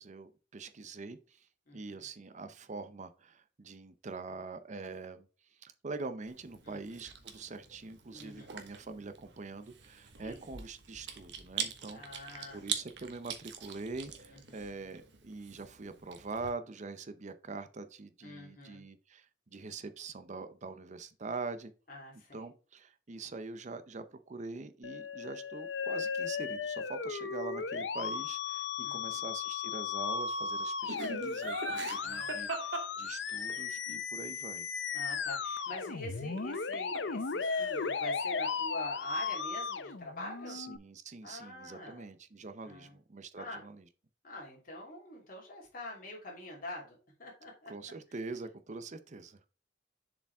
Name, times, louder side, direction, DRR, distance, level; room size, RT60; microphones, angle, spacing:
voice 1, 0.0-1.5 1.7-21.7 22.3-34.7 40.5-43.9 47.7-49.4, right 3 dB, 40° right, 0.6 m, -44 dB
voice 2, 1.7-2.1 6.6-7.0 8.1-8.5 10.2-10.5 11.9-12.6 14.3-14.7 18.2-18.8 21.9-22.5 28.8-29.3 31.6-32.3 34.9-40.6 41.2-42.1 42.6-43.0 43.4-43.6 44.2-47.7, left 1 dB, 50° left, 2.8 m, -46 dB
Chewing mastication, 6.3-16.5, right 8 dB, 70° right, 1.2 m, -44 dB
Musical instrument, 24.8-40.8, left 5 dB, 75° left, 0.7 m, -36 dB
Laughter, 30.9-33.6 36.4-37.2 37.4-38.0, right 3 dB, 90° right, 1.7 m, -40 dB
7.1 x 5.0 x 3.4 m
head